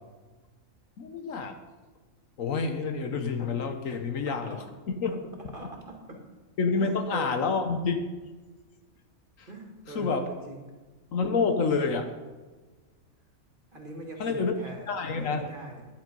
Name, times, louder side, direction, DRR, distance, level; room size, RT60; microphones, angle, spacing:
voice 1, 1.0-1.6 2.4-4.6 5.0-5.1 6.6-8.0 9.4-9.5 9.9-10.3 11.1-12.1 14.2-14.5 14.9-15.5, left 4 dB, 70° left, 7 dB, 1.2 m, -28 dB
voice 2, 3.9-4.6 5.0-5.2 5.5-6.2 6.8-7.3 9.5-10.2 10.5-10.6 13.7-15.8, right 1 dB, 35° right, 1 dB, 2.1 m, -43 dB
10.5 x 8.6 x 5.3 m, 1.3 s
omnidirectional pair, 1.5 m